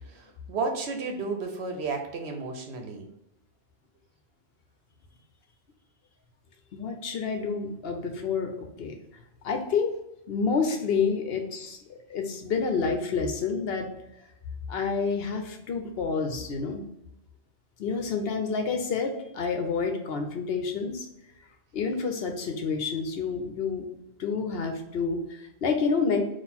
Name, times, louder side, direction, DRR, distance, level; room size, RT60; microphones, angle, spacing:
voice 1, 0.5-3.0, right 4 dB, 70° right, 4 dB, 1.0 m, -32 dB
voice 2, 6.7-8.9 9.4-9.9 10.3-13.9 14.7-16.9 17.8-21.1 21.7-23.9 24.2-26.2, left 5 dB, 65° left, 4 dB, 0.9 m, -29 dB
4.1 x 2.5 x 4.1 m, 0.88 s
omnidirectional pair, 1.1 m